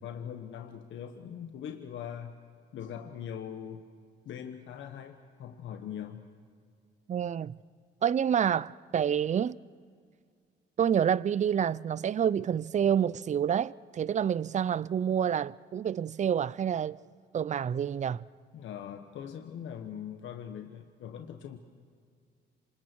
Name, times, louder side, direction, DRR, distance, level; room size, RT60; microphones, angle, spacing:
voice 1, 0.0-2.3 2.7-3.8 4.2-6.2 18.5-21.6, left 8 dB, 75° left, 1.3 m, -41 dB
voice 2, 7.1-7.6 8.0-9.6 10.8-17.0 17.3-18.3, right 8 dB, 35° right, 0.5 m, -28 dB
27.0 x 26.0 x 4.6 m
cardioid pair, 90°, 20 cm